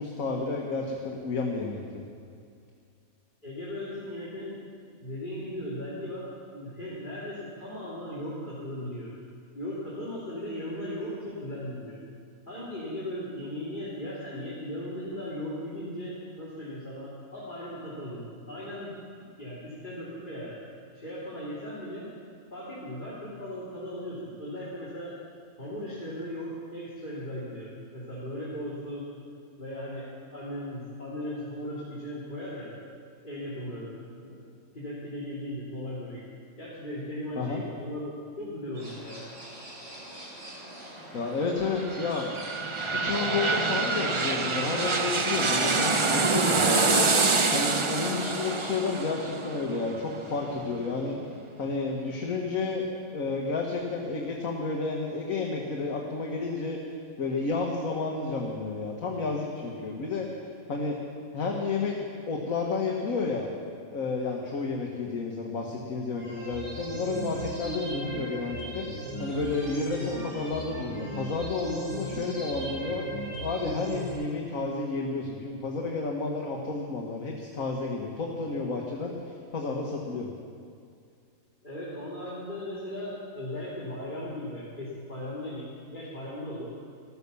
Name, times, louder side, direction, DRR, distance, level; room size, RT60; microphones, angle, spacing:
voice 1, 0.0-2.0 37.4-37.6 41.1-42.3 42.9-51.2 51.6-52.8 53.1-56.8 57.2-60.3 60.7-61.0 61.3-63.5 63.9-73.1 73.4-80.3, left 4 dB, 70° left, 0 dB, 1.8 m, -31 dB
voice 2, 3.4-4.6 5.0-6.3 6.5-9.1 9.5-12.0 12.5-18.9 19.2-20.6 20.9-22.1 22.5-25.2 25.6-29.1 29.6-32.7 33.2-33.9 34.2-34.4 34.7-36.2 36.6-39.2 81.6-86.7, left 1 dB, 35° left, -9 dB, 3.4 m, -37 dB
sound 1, 38.7-48.9, right 1 dB, 55° right, 3.6 m, -45 dB
sound 2, 41.6-51.2 51.6-51.7, right 3 dB, 30° right, 0.6 m, -26 dB
sound 3, 66.1-74.1, right 2 dB, 85° right, 5.7 m, -37 dB
14.0 x 13.5 x 7.0 m, 2.3 s
omnidirectional pair, 1.5 m